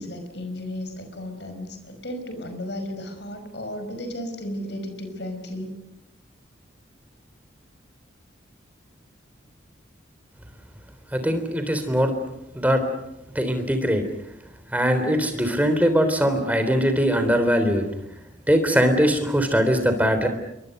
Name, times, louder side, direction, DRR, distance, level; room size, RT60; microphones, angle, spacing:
voice 1, 0.0-5.7, left 1 dB, 65° left, 7 dB, 5.5 m, -34 dB
voice 2, 11.1-12.1 12.5-12.9 13.4-14.0 14.7-17.9 18.5-20.3, equal, 10° right, 7 dB, 3.6 m, -21 dB
29.0 x 23.5 x 6.6 m, 0.86 s
head